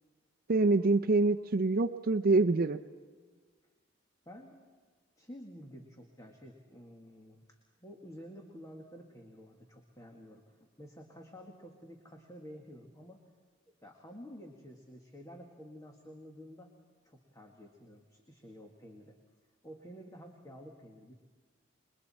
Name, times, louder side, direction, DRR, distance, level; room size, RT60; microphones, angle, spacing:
voice 1, 0.5-2.8, right 3 dB, 50° right, 7 dB, 0.6 m, -26 dB
voice 2, 4.3-4.6 5.2-13.2 13.7-16.7 17.0-19.2 19.6-21.1, equal, 15° left, 1 dB, 1.9 m, -51 dB
28.0 x 23.0 x 4.3 m, 1.5 s
head